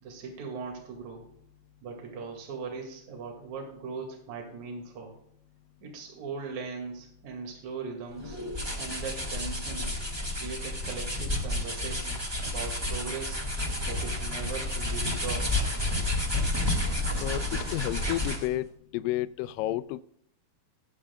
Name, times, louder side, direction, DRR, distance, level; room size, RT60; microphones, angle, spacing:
voice 1, 0.0-1.3 1.8-5.1 5.8-8.4 8.8-10.0 10.4-13.4 13.9-15.6, right 5 dB, 55° right, 1 dB, 3.4 m, -39 dB
sound 1, 8.2-18.6, left 1 dB, 10° right, 1.2 m, -31 dB
voice 2, 17.2-18.6 18.9-20.0, left 15 dB, 80° left, 13 dB, 2.2 m, -31 dB
18.5 x 7.8 x 2.3 m, 0.68 s
omnidirectional pair, 4.1 m